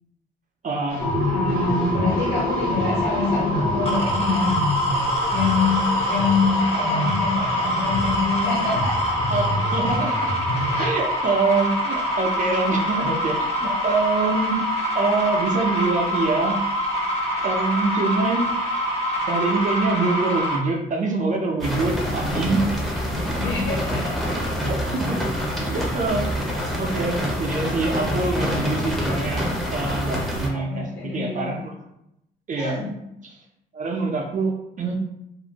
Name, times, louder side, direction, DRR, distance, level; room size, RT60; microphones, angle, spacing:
voice 1, 0.6-1.0 9.3-14.6 14.9-16.6 17.4-18.5 19.2-22.7 24.6-25.2 25.5-26.4 26.8-31.7 32.5-32.8 33.2-33.4 33.7-34.9, right 3 dB, 40° right, 1 dB, 0.5 m, -25 dB
sound 1, 0.9-10.9, left 1 dB, 85° left, 0.8 m, -30 dB
sound 2, 1.0-20.6, equal, 30° left, 0.9 m, -25 dB
voice 2, 1.2-4.6 5.3-9.2 10.7-10.9 17.8-17.9 23.1-24.2 30.5-31.5 32.6-32.9, left 4 dB, 55° left, -4 dB, 1.3 m, -26 dB
sound 3, 21.6-30.5, equal, ahead, 0.7 m, -26 dB
2.5 x 2.0 x 2.8 m, 0.82 s
cardioid pair, 90°, 20 cm